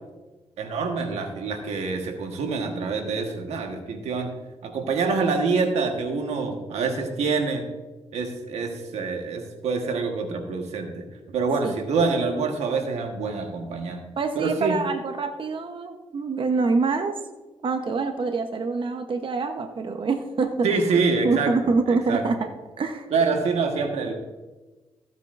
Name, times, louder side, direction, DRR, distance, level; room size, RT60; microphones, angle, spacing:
voice 1, 0.6-4.3 4.6-7.6 8.1-11.0 11.3-14.0 14.3-14.8 20.6-21.5 21.9-22.2 23.1-24.1, right 4 dB, 90° right, 4 dB, 1.3 m, -26 dB
voice 2, 14.2-17.1 17.6-22.5 22.8-23.1, right 4 dB, 50° right, 6 dB, 0.9 m, -26 dB
15.0 x 8.1 x 2.5 m, 1.2 s
cardioid pair, 60°, 11 cm